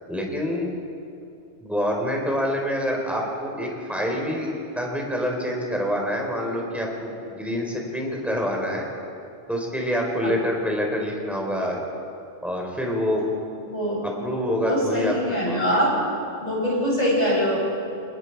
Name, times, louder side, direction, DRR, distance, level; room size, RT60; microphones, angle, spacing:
voice 1, 0.1-0.7 1.6-8.9 9.5-11.8 12.4-13.2 14.0-15.8, equal, ahead, -1 dB, 4.1 m, -26 dB
voice 2, 13.6-14.1 14.6-16.0 16.4-17.6, equal, 35° left, -5 dB, 7.1 m, -23 dB
28.0 x 20.5 x 4.7 m, 2.6 s
omnidirectional pair, 1.2 m